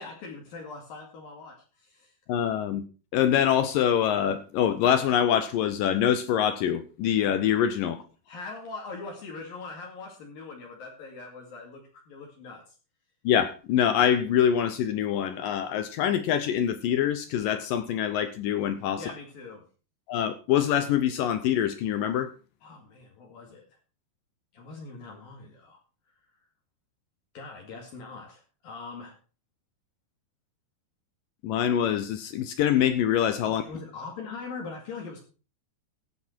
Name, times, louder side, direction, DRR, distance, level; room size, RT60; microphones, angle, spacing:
voice 1, 0.0-2.1 8.3-12.7 19.0-19.6 22.6-23.6 24.5-25.8 27.3-29.2 33.6-35.2, left 4 dB, 60° left, 0 dB, 3.8 m, -42 dB
voice 2, 2.3-2.8 3.1-8.0 13.2-19.0 20.1-22.3 31.4-33.6, left 9 dB, 75° left, 11 dB, 2.1 m, -25 dB
15.0 x 9.6 x 4.5 m, 0.35 s
omnidirectional pair, 4.8 m